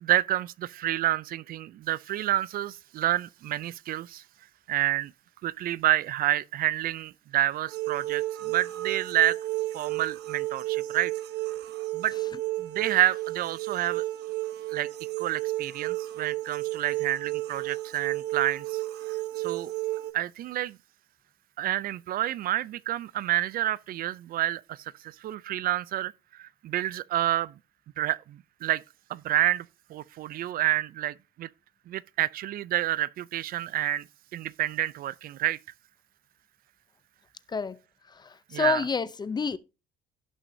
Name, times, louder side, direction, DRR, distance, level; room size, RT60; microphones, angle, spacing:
voice 1, 0.0-4.2 4.7-5.1 5.4-9.4 9.7-11.1 11.9-12.1 12.6-14.0 14.7-14.9 15.2-18.8 19.4-19.7 20.1-20.8 21.6-27.5 28.0-28.8 29.1-31.5 31.9-34.0 34.3-35.6 38.5-38.9, right 13 dB, 60° right, 0.5 m, -29 dB
sound 1, 7.7-20.1, right 17 dB, 80° right, 1.2 m, -32 dB
voice 2, 38.5-39.6, left 5 dB, 25° left, 0.6 m, -27 dB
17.0 x 6.0 x 2.7 m
cardioid pair, 110°, 17 cm